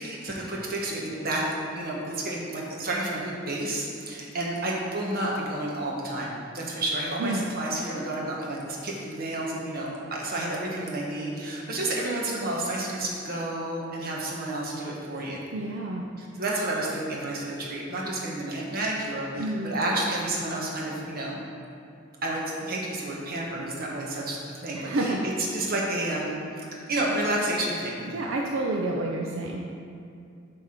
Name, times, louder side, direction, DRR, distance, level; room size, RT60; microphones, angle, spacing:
voice 1, 0.0-1.4 1.7-15.4 16.2-21.4 22.2-25.1 25.5-28.0, right 1 dB, 50° right, -3 dB, 1.3 m, -30 dB
voice 2, 15.5-16.1 19.4-19.7 24.7-25.3 28.1-29.6, right 2 dB, 85° right, -1 dB, 0.6 m, -29 dB
7.9 x 3.5 x 5.9 m, 2.5 s
head